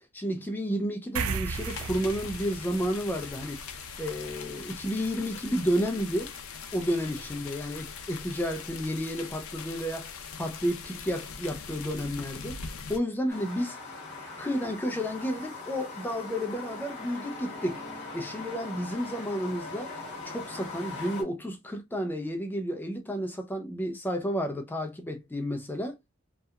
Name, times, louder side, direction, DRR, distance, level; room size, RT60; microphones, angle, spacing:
voice 1, 0.0-3.6 4.0-6.3 6.7-13.8 14.4-17.8 18.1-19.9 20.2-26.0, equal, 10° left, 0.4 m, -31 dB
sound 1, 1.2-7.9, right 5 dB, 75° right, 0.4 m, -39 dB
sound 2, 1.5-13.0, left 6 dB, 70° left, 0.5 m, -41 dB
sound 3, 13.3-21.2, left 3 dB, 50° left, 1.0 m, -41 dB
2.8 x 2.2 x 2.3 m
head